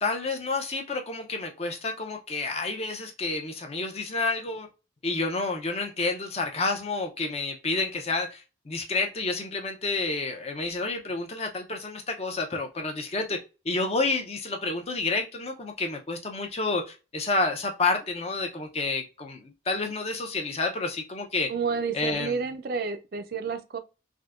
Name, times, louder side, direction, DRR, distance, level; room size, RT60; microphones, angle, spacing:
voice 1, 0.0-4.7 5.0-21.5 21.9-22.4, left 3 dB, 30° left, 0.5 m, -29 dB
voice 2, 21.5-23.8, right 5 dB, 50° right, 0.4 m, -30 dB
3.5 x 2.6 x 2.4 m
head